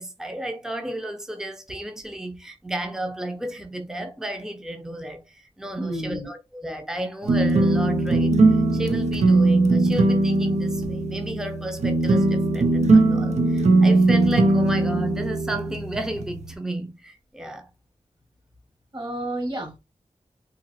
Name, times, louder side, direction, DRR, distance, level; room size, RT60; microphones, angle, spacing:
voice 1, 0.0-17.7, right 1 dB, 5° right, 0.6 m, -33 dB
voice 2, 5.8-6.3 18.9-19.8, right 1 dB, 35° right, 1.6 m, -30 dB
sound 1, 7.2-16.5, right 2 dB, 65° right, 0.5 m, -20 dB
4.0 x 2.9 x 2.6 m
wide cardioid pair, 115°, 12 cm